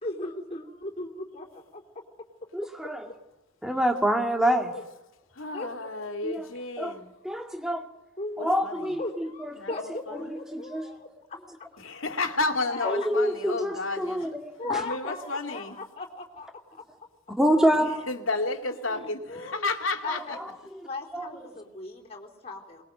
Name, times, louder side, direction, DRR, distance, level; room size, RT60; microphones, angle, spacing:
voice 1, 0.0-1.8 4.4-4.8 5.5-5.9 8.2-8.6 9.0-11.4 12.7-12.9 14.6-16.5 19.3-19.7 20.0-20.4 20.8-22.8, left 3 dB, 30° left, 3.9 m, -37 dB
voice 2, 2.5-3.1 3.6-4.7 6.2-6.4 6.8-6.9 7.2-7.8 8.4-9.5 10.5-10.9 12.8-14.8 17.4-17.9 20.7-20.8 21.1-21.3, equal, 5° right, 2.2 m, -26 dB
voice 3, 5.3-7.1 8.4-9.0 9.6-10.2 11.8-14.2 14.8-15.8 18.1-20.4, left 3 dB, 80° left, 2.4 m, -32 dB
22.5 x 21.0 x 8.0 m
head